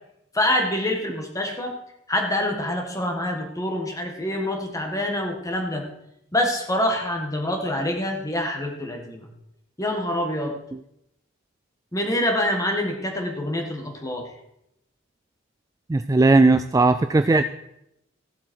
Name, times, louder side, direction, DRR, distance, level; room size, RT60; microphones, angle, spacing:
voice 1, 0.3-1.8 2.1-5.9 6.3-9.3 9.8-10.5 11.9-14.3, left 1 dB, 15° left, 3 dB, 1.7 m, -26 dB
voice 2, 15.9-17.4, right 3 dB, 15° right, 9 dB, 0.3 m, -17 dB
15.5 x 7.4 x 4.6 m, 0.81 s
head